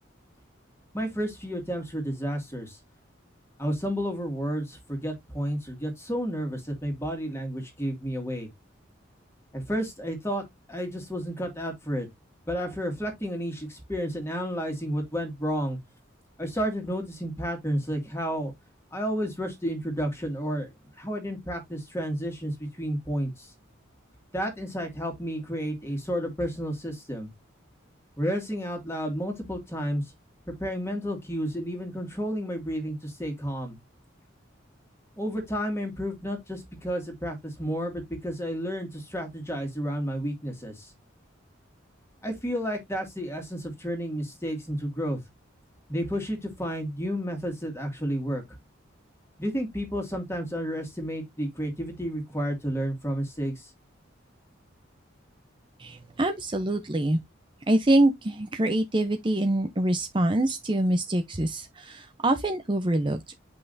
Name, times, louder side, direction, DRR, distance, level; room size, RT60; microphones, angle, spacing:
voice 1, 0.9-2.8 3.6-8.5 9.5-10.4 10.7-12.1 12.5-15.8 16.4-18.5 18.9-20.7 21.0-23.5 24.3-27.3 28.2-30.0 30.5-33.8 35.2-40.9 42.2-45.2 45.9-48.4 49.4-53.7, equal, 15° left, 2.1 m, -31 dB
voice 2, 55.8-57.2 57.7-63.2, right 1 dB, 25° right, 0.6 m, -25 dB
8.3 x 5.5 x 2.6 m
head